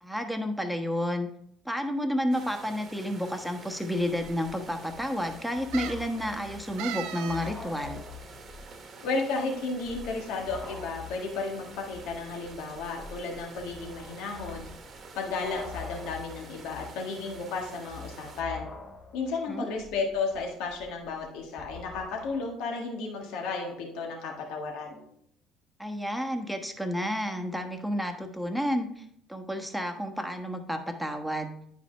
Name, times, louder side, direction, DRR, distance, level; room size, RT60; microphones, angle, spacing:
voice 1, 0.0-1.3 1.6-8.0 19.5-19.7 25.8-31.5, equal, ahead, 4 dB, 1.2 m, -31 dB
sound 1, 2.3-18.4, right 4 dB, 45° right, 1.3 m, -48 dB
sound 2, 2.3-2.8 3.7-3.8 4.0-4.1 5.7-6.1 6.8-7.5 7.8-7.9, right 12 dB, 70° right, 0.4 m, -38 dB
sound 3, 4.4-8.8 9.1-9.2 9.7-22.4, left 4 dB, 30° left, 1.7 m, -46 dB
voice 2, 9.0-14.7 15.2-18.7 19.1-25.0, left 4 dB, 70° left, 0 dB, 1.6 m, -33 dB
10.0 x 5.0 x 3.3 m, 0.69 s
hypercardioid pair, 65°, 0 cm